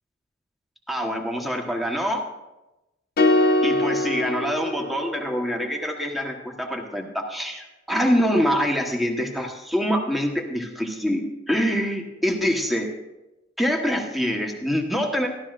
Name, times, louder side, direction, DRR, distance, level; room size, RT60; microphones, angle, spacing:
voice 1, 0.9-2.2 3.6-12.9 13.6-15.3, equal, ahead, 2 dB, 1.2 m, -25 dB
sound 1, 3.2-5.5, left 2 dB, 50° left, 0.8 m, -22 dB
14.5 x 12.0 x 2.5 m, 0.98 s
head